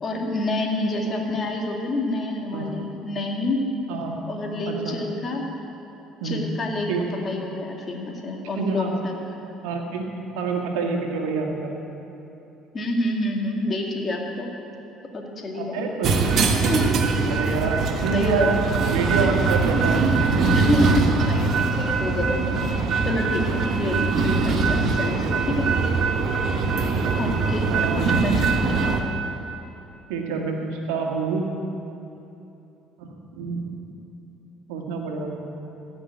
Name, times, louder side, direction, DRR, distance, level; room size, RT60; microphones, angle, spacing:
voice 1, 0.0-3.6 4.3-5.5 6.2-6.9 7.2-9.1 12.7-14.5 15.1-15.9 16.7-17.6 18.1-18.6 19.2-19.3 20.5-22.7 23.0-25.7 27.2-27.7 28.0-28.5, left 2 dB, 40° left, 1 dB, 2.3 m, -28 dB
voice 2, 4.7-5.0 6.2-6.5 6.9-7.1 8.5-8.9 9.6-10.1 10.4-11.8 15.5-16.2 17.3-18.5 18.9-20.6 26.9-27.1 27.7-28.3 30.1-31.5 33.0-33.8 34.7-35.4, right 4 dB, 85° right, 1 dB, 1.8 m, -27 dB
sound 1, 16.0-29.0, right 4 dB, 55° right, 1.3 m, -22 dB
15.0 x 6.2 x 8.9 m, 3.0 s
supercardioid pair, 75°, 0 cm